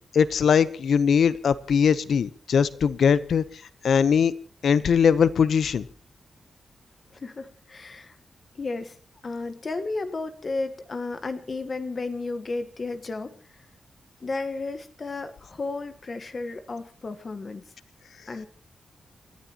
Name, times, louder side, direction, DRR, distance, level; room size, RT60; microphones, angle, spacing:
voice 1, 0.1-3.4 3.8-4.3 4.6-5.8, left 7 dB, 75° left, 1.0 m, -21 dB
voice 2, 7.1-8.1 8.6-8.9 9.2-13.3 14.2-17.6 18.3-18.5, left 3 dB, 35° left, 1.4 m, -33 dB
29.5 x 14.5 x 3.0 m
wide cardioid pair, 150°, 0 cm